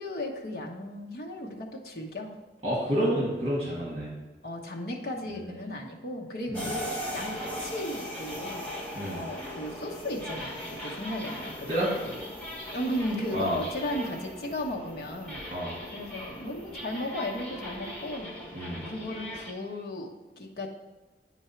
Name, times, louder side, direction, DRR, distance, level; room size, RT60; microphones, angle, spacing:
voice 1, 0.0-2.4 4.4-8.7 9.1-11.7 12.0-12.2 12.7-15.4 15.9-18.3 18.9-20.7, left 1 dB, 60° left, -1 dB, 1.0 m, -35 dB
voice 2, 2.6-4.1 5.5-5.6 6.5-6.7 8.9-9.2 11.7-11.9 13.3-13.6 15.5-15.7 18.5-18.8, equal, 35° right, -6 dB, 2.1 m, -29 dB
sound 1, 6.5-19.5, equal, 10° left, 1.1 m, -39 dB
9.0 x 4.5 x 4.5 m, 1.2 s
head